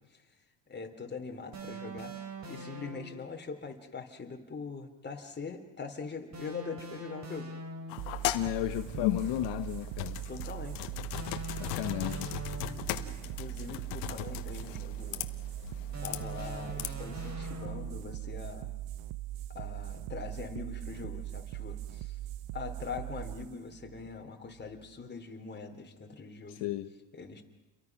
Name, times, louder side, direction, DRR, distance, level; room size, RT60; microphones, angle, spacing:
voice 1, 0.7-2.1 2.4-7.5 8.9-9.0 10.3-11.0 12.6-15.2 16.0-18.7 19.5-22.2 22.5-26.6 27.1-27.4, left 5 dB, 20° left, 4 dB, 3.3 m, -42 dB
sound 1, 1.5-3.3 6.3-8.2 11.1-13.1 15.9-18.1, right 1 dB, 35° right, 3.7 m, -43 dB
sound 2, 7.9-17.3, left 15 dB, 85° left, 1.7 m, -38 dB
sound 3, 8.0-25.0, right 14 dB, 75° right, 0.9 m, -41 dB
voice 2, 8.3-10.2 11.5-12.4 26.5-26.9, left 14 dB, 60° left, 7 dB, 1.3 m, -34 dB
30.0 x 23.0 x 6.1 m, 1.1 s
cardioid pair, 115°, 49 cm